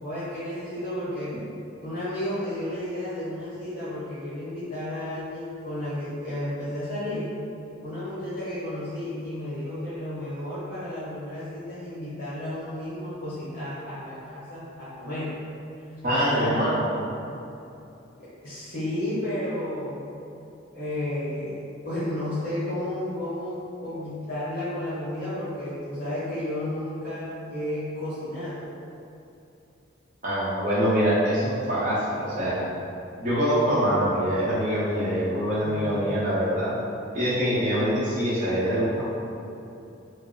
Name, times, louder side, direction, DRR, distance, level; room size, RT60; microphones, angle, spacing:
voice 1, 0.0-1.3 1.8-7.4 7.8-15.3 16.1-16.6 18.4-20.2 20.7-28.6 35.6-36.2, left 1 dB, 45° left, -13 dB, 0.9 m, -32 dB
voice 2, 16.0-16.9 30.2-32.6 33.2-36.8 37.1-39.0, equal, 40° right, -10 dB, 0.8 m, -24 dB
4.4 x 2.0 x 3.2 m, 2.8 s
head